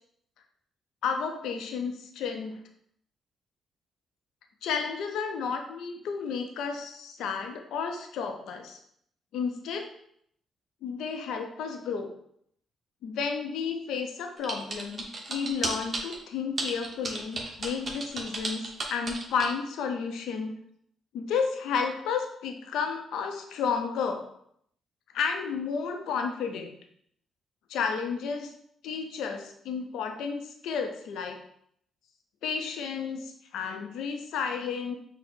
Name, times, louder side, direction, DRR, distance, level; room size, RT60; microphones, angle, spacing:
voice 1, 1.0-2.6 4.6-8.8 9.3-9.9 10.8-12.1 13.0-20.5 21.1-24.3 25.1-26.7 27.7-28.5 28.8-31.4 32.4-34.9, left 6 dB, 85° left, 4 dB, 0.5 m, -32 dB
sound 1, 14.4-16.1 16.6-19.5, right 2 dB, 40° right, 1.0 m, -33 dB
5.6 x 2.1 x 4.3 m, 0.70 s
cardioid pair, 90°, 0 cm